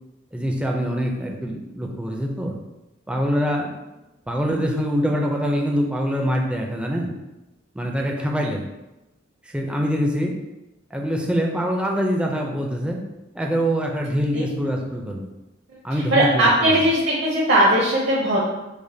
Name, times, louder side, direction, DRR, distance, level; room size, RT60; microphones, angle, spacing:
voice 1, 0.3-2.5 3.1-3.7 4.3-7.1 7.7-8.6 9.5-10.3 10.9-13.0 13.3-15.3 15.8-16.8, equal, 5° right, 0 dB, 0.4 m, -24 dB
voice 2, 16.1-18.4, right 1 dB, 55° right, -5 dB, 0.6 m, -18 dB
5.0 x 2.1 x 2.7 m, 1.0 s
head